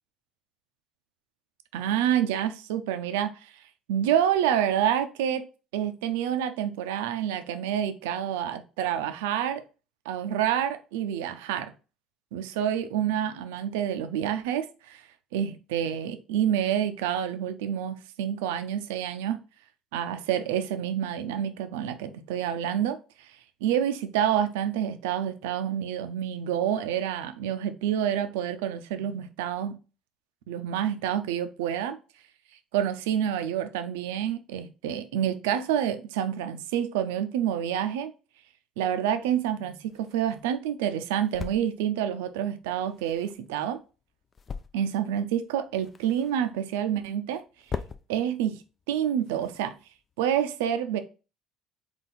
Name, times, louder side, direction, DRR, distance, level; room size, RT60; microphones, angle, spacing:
voice 1, 1.7-3.5 3.9-5.4 5.7-9.6 10.1-11.7 12.3-15.0 15.3-19.4 19.9-23.3 23.6-29.8 30.5-32.0 32.7-38.1 38.8-43.8 44.7-47.4 48.1-48.6 48.9-49.7 50.2-51.0, right 10 dB, 85° right, 0.4 m, -28 dB
sound 1, 39.2-50.4, left 6 dB, 40° left, 0.4 m, -44 dB
3.9 x 2.4 x 4.0 m
hypercardioid pair, 70°, 0 cm